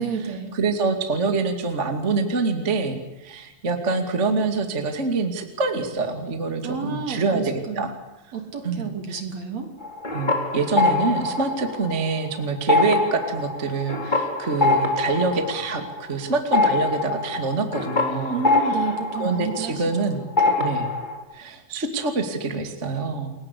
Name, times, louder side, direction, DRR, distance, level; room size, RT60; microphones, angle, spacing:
voice 1, 0.0-0.5 6.6-7.9 8.3-9.7 18.3-20.6, right 6 dB, 40° right, 4 dB, 4.0 m, -31 dB
voice 2, 0.5-7.9 8.6-9.2 10.1-18.4 19.2-20.2 20.6-20.9 21.3-23.3, right 4 dB, 25° right, 5 dB, 1.8 m, -25 dB
sound 1, 9.8-12.3 12.6-20.0 20.4-21.2, left 3 dB, 10° left, 3.4 m, -24 dB
29.5 x 22.0 x 8.5 m, 0.95 s
omnidirectional pair, 4.9 m